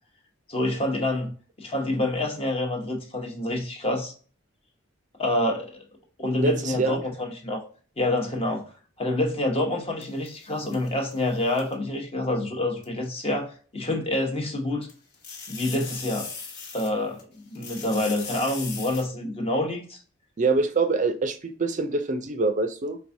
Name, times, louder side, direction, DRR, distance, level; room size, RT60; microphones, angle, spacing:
voice 1, 0.5-1.3 1.6-4.1 5.2-5.8 6.2-7.6 8.0-8.6 9.0-14.9 15.5-16.3 16.7-20.0, left 1 dB, 30° left, 2 dB, 0.9 m, -27 dB
voice 2, 6.4-7.0 20.4-23.0, right 3 dB, 40° right, 8 dB, 0.4 m, -25 dB
sound 1, 10.0-11.7 12.8-12.9 14.8-17.2 17.5-19.0, left 5 dB, 55° left, 1.0 m, -39 dB
4.7 x 3.4 x 2.6 m, 0.40 s
head